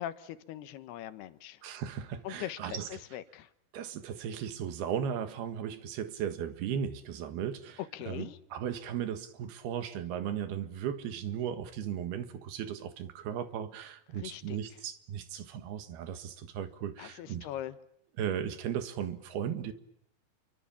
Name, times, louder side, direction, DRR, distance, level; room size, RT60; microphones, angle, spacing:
voice 1, 0.0-1.6 2.2-3.5 7.9-8.4 14.2-14.6 17.0-17.8, left 12 dB, 80° left, 3.2 m, -41 dB
voice 2, 1.6-3.0 3.7-17.5 18.2-19.7, right 9 dB, 75° right, 3.5 m, -36 dB
27.5 x 24.0 x 7.2 m
omnidirectional pair, 4.6 m